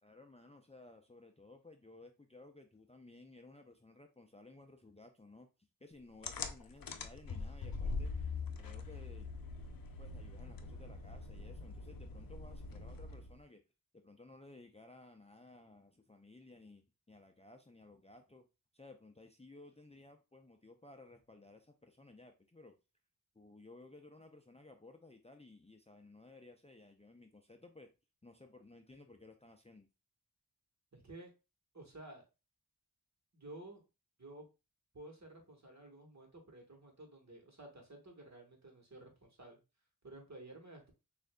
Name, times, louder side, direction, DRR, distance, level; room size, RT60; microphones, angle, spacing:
voice 1, 0.0-5.5 5.8-8.1 8.6-9.5 10.0-13.6 13.9-18.5 18.7-22.7 23.3-27.9 28.2-29.9, left 2 dB, 15° left, 0.5 m, -57 dB
sound 1, 6.2-13.4, left 4 dB, 65° left, 0.6 m, -43 dB
voice 2, 30.9-31.3 31.7-32.2 33.3-33.8 34.2-34.5 34.9-39.6 40.0-40.9, right 2 dB, 45° right, 1.4 m, -53 dB
6.1 x 2.5 x 2.2 m
wide cardioid pair, 40°, 37 cm